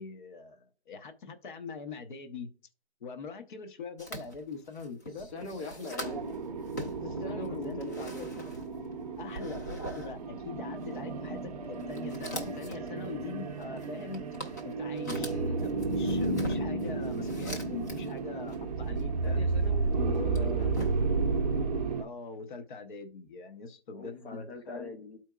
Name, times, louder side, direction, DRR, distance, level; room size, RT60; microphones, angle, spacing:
voice 1, 0.0-2.5 3.0-5.3 7.0-8.5 9.2-14.2 14.6-19.4 19.9-20.7 22.0-25.0, left 4 dB, 50° left, 7 dB, 0.9 m, -43 dB
sound 1, 4.0-6.4 6.7-8.9 9.3-10.2 10.8-11.0 11.6-18.2 18.5-19.7 20.1-21.3, equal, 15° left, 0.5 m, -43 dB
voice 2, 5.1-6.3 7.2-8.4 15.2-15.6 19.2-20.9 23.9-25.2, left 2 dB, 80° left, 1 dB, 1.7 m, -43 dB
sound 2, 6.0-22.0, right 3 dB, 35° right, 0.6 m, -32 dB
13.0 x 4.4 x 2.3 m, 0.38 s
hypercardioid pair, 160°, 32 cm